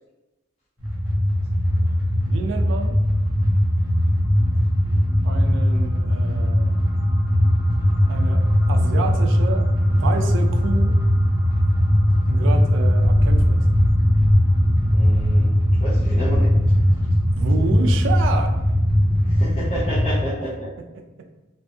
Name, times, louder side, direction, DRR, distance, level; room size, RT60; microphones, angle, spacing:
sound 1, 0.8-20.2, equal, 10° right, 0.7 m, -19 dB
voice 1, 2.2-3.0 5.2-6.8 8.1-8.4 8.7-10.9 12.3-13.6 17.3-18.5, right 3 dB, 85° right, 5 dB, 0.3 m, -29 dB
voice 2, 14.9-15.5 15.8-16.5 19.3-20.7, equal, 30° left, -10 dB, 0.5 m, -30 dB
2.5 x 2.2 x 2.5 m, 1.1 s
head